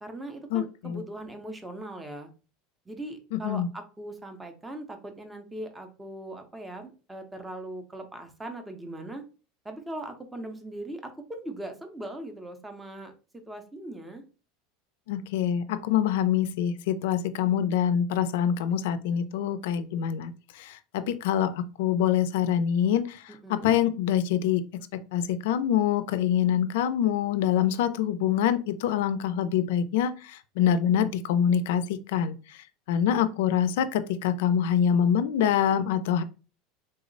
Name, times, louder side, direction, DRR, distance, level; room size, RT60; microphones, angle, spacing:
voice 1, 0.0-2.3 2.9-9.2 9.6-14.2 23.4-23.7, right 1 dB, 10° right, 0.5 m, -40 dB
voice 2, 0.5-1.0 3.3-3.7 15.1-36.2, left 9 dB, 75° left, 0.4 m, -25 dB
3.7 x 2.0 x 3.8 m
supercardioid pair, 165°, 0 cm